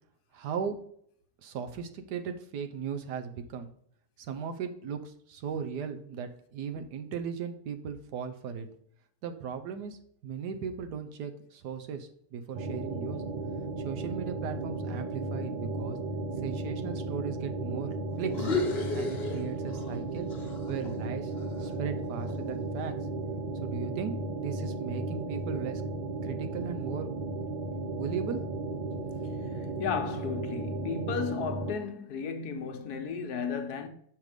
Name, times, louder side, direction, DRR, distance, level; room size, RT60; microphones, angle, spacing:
voice 1, 0.3-0.8 1.4-3.7 4.2-8.7 9.2-10.0 10.2-13.2 13.8-16.0 16.3-17.9 18.2-18.5 18.9-20.3 20.7-21.3 21.6-22.9 23.6-25.8 26.2-27.2 28.0-28.4 28.7-28.8, right 7 dB, 75° right, 1.4 m, -37 dB
sound 1, 12.5-31.7, right 2 dB, 55° right, 0.5 m, -35 dB
sound 2, 18.3-20.0 20.3-22.5, left 3 dB, 45° left, 1.0 m, -34 dB
voice 2, 29.8-33.9, left 6 dB, 70° left, 1.3 m, -34 dB
6.3 x 5.2 x 4.9 m
omnidirectional pair, 1.8 m